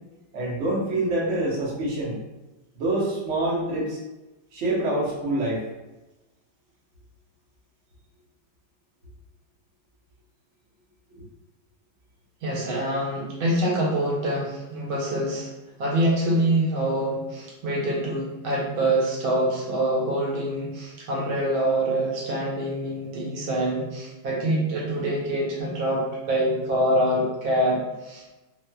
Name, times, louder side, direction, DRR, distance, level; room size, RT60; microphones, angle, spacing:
voice 1, 0.3-2.2 2.7-4.0 4.5-5.6, right 1 dB, 60° right, -6 dB, 0.7 m, -26 dB
voice 2, 12.4-15.5 15.8-28.3, right 1 dB, 75° right, -4 dB, 1.5 m, -25 dB
4.1 x 2.1 x 2.2 m, 1.0 s
omnidirectional pair, 2.3 m